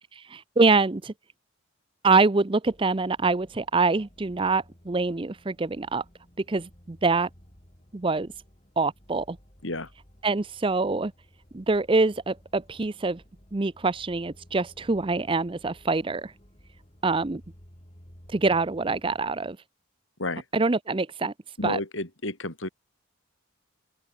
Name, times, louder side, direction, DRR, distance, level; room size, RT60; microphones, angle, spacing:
voice 1, 0.3-1.1 2.0-6.0 6.4-7.3 7.9-8.3 8.8-9.4 10.2-11.1 11.5-13.2 13.5-16.3 17.0-17.4 18.3-19.6 20.5-21.3 21.6-21.8, right 3 dB, 25° right, 0.5 m, -25 dB
sound 1, 2.6-19.6, equal, 30° left, 5.3 m, -55 dB
voice 2, 21.6-22.7, left 2 dB, 65° left, 5.0 m, -31 dB
open air
head